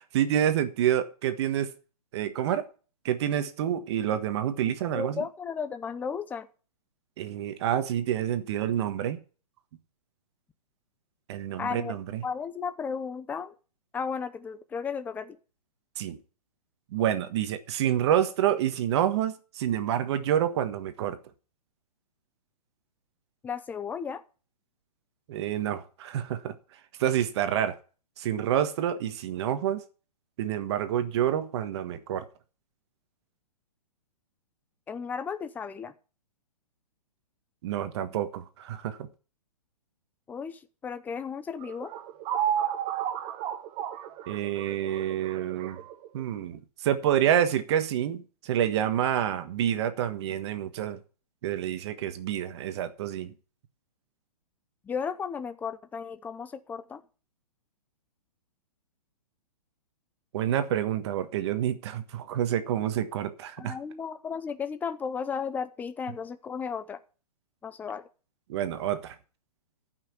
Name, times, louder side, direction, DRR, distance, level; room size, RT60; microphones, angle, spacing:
voice 1, 0.1-1.7 2.1-2.7 3.0-5.2 7.2-9.2 11.3-12.2 16.0-16.2 16.9-21.2 25.3-26.5 27.0-27.8 28.2-29.8 30.4-32.3 37.6-39.0 44.3-45.8 46.1-51.0 51.4-53.3 60.3-63.8 68.5-69.2, right 10 dB, 45° right, 1.4 m, -28 dB
voice 2, 4.9-6.5 11.6-12.0 12.2-13.6 13.9-15.4 23.4-24.2 34.9-35.9 40.3-41.9 54.8-57.0 63.6-67.0 67.6-68.1, left 6 dB, 10° left, 0.6 m, -34 dB
sound 1, 41.6-46.2, right 10 dB, 25° right, 1.0 m, -32 dB
14.0 x 6.0 x 6.9 m
hypercardioid pair, 145°, 20 cm